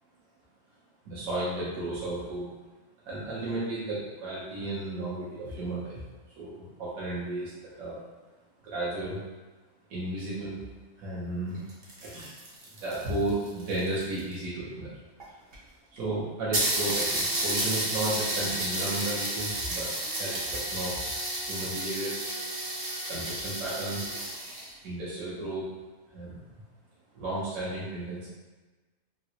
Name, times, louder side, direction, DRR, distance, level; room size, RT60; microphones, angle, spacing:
voice 1, 1.0-2.5 3.1-6.0 6.4-7.5 7.8-8.0 8.6-9.2 9.9-10.6 11.0-11.7 12.0-12.3 12.8-14.9 15.9-19.9 20.2-21.0 21.5-22.2 23.1-24.4 24.8-25.7 26.1-26.4 27.1-28.3, right 2 dB, 75° right, -8 dB, 1.2 m, -33 dB
sound 1, 11.5-14.3 15.2-15.3 15.5-15.6 16.0-16.1 16.5-24.7, right 1 dB, 50° right, 0.7 m, -31 dB
3.7 x 2.1 x 2.7 m, 1.3 s
omnidirectional pair, 1.5 m